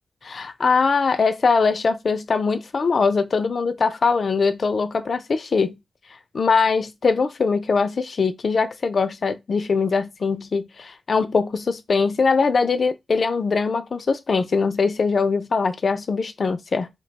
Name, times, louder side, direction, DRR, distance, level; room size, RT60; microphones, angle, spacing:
voice 1, 0.2-5.8 6.3-16.9, left 4 dB, 65° left, 0.4 m, -22 dB
2.7 x 2.2 x 4.0 m
cardioid pair, 70°, 0 cm